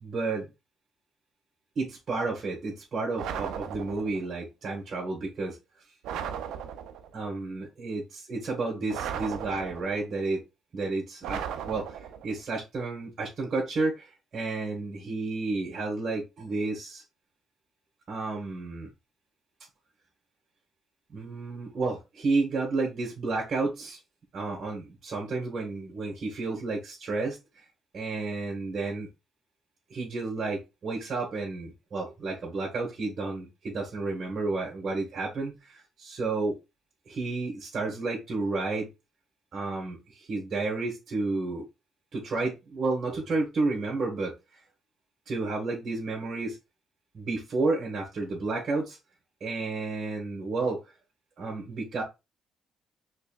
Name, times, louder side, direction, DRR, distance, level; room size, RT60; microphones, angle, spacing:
voice 1, 0.0-0.5 1.7-5.6 7.1-10.4 10.7-17.0 18.1-18.9 21.1-24.0 24.3-27.4 27.9-29.1 29.9-36.6 37.0-38.9 39.5-41.6 42.1-44.3 45.3-46.6 47.1-49.0 49.4-50.8 51.4-52.0, right 3 dB, 50° right, 1.5 m, -31 dB
sound 1, 3.2-4.2 6.0-7.1 8.9-10.1 11.2-12.3, right 8 dB, 90° right, 0.4 m, -36 dB
4.4 x 3.3 x 2.4 m
cardioid pair, 90°, 0 cm